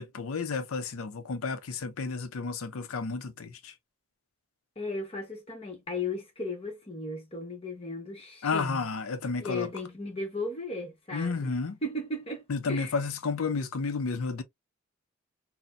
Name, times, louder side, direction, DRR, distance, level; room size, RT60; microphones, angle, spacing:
voice 1, 0.0-3.7 8.4-9.7 11.1-11.8 12.5-14.4, left 4 dB, 70° left, 0.5 m, -32 dB
voice 2, 4.8-8.8 9.4-11.5 11.8-12.4 12.7-12.9, left 2 dB, 25° left, 0.9 m, -35 dB
4.1 x 2.1 x 2.4 m
head